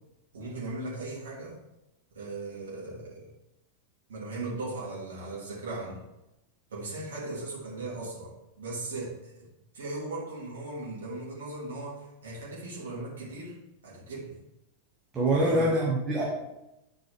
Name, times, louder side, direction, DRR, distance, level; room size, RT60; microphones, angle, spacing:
voice 1, 0.3-1.6 2.1-3.3 4.1-6.1 6.7-9.5 9.7-13.6 13.8-14.4 15.3-15.8, right 2 dB, 65° right, -6 dB, 2.7 m, -38 dB
voice 2, 15.1-16.2, right 1 dB, 20° right, -5 dB, 1.7 m, -24 dB
10.5 x 4.7 x 3.5 m, 0.91 s
figure-of-eight pair, 90°, 0 cm